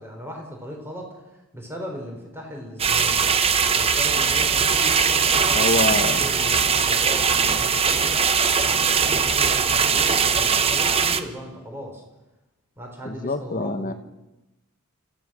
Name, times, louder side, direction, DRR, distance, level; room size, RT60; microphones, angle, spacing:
voice 1, 0.0-3.2 3.7-12.0 12.8-13.9, equal, 10° right, 1 dB, 4.4 m, -37 dB
sound 1, 2.8-11.2, right 6 dB, 25° right, 0.8 m, -20 dB
voice 2, 5.5-6.2 13.0-13.9, left 2 dB, 35° left, 10 dB, 1.2 m, -25 dB
27.5 x 15.0 x 6.4 m, 1.0 s
head